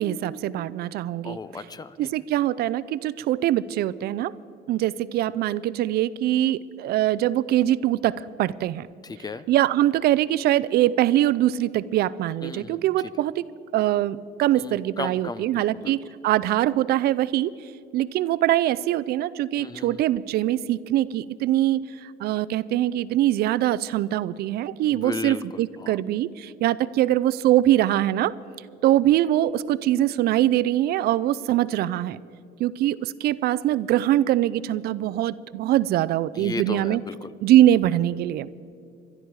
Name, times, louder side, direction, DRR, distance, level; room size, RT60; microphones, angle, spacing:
voice 1, 0.0-1.4 2.0-4.3 4.7-8.9 9.5-13.4 13.7-16.0 16.2-17.5 17.9-28.3 28.8-32.2 32.6-37.0 37.4-38.5, right 13 dB, 70° right, 17 dB, 0.5 m, -23 dB
voice 2, 1.2-2.0 9.0-9.5 12.4-12.8 14.6-16.0 19.6-20.0 24.9-26.0 36.3-37.3, left 4 dB, 25° left, 15 dB, 0.6 m, -35 dB
22.0 x 12.0 x 4.7 m, 2.4 s
cardioid pair, 110°, 17 cm